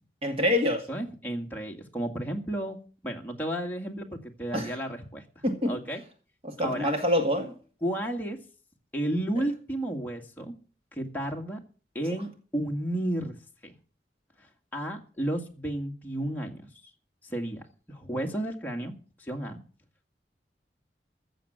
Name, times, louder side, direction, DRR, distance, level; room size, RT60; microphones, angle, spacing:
voice 1, 0.2-0.9 4.5-4.7 5.4-5.7 6.4-7.5, left 1 dB, 35° right, 1.9 m, -26 dB
voice 2, 0.9-2.8 3.0-5.3 5.7-6.0 6.6-6.9 7.8-8.4 8.9-10.5 10.9-11.6 11.9-13.4 13.6-13.7 14.4-16.6 17.2-18.9 19.2-19.6, right 1 dB, 10° left, 2.0 m, -32 dB
15.0 x 7.1 x 7.8 m
head